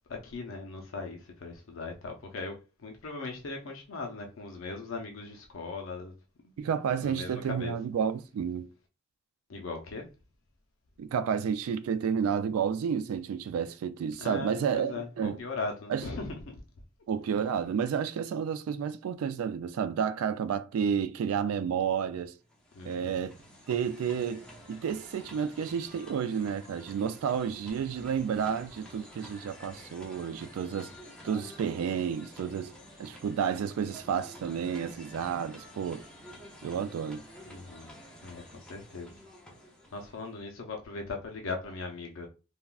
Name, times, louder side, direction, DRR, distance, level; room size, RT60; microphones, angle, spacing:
voice 1, 0.1-6.1 7.0-7.7 9.5-10.1 14.2-16.5 22.7-23.2 37.5-37.9 38.2-39.1 39.9-42.3, left 3 dB, 65° left, 0.5 m, -39 dB
voice 2, 6.6-8.7 11.0-15.4 15.9-16.1 17.1-22.3 22.8-23.4 23.7-30.9 31.2-32.7 33.0-36.0 36.6-37.2, right 7 dB, 85° right, 0.3 m, -31 dB
sound 1, 22.4-40.4, left 1 dB, 5° left, 0.5 m, -50 dB
3.5 x 2.1 x 2.3 m
head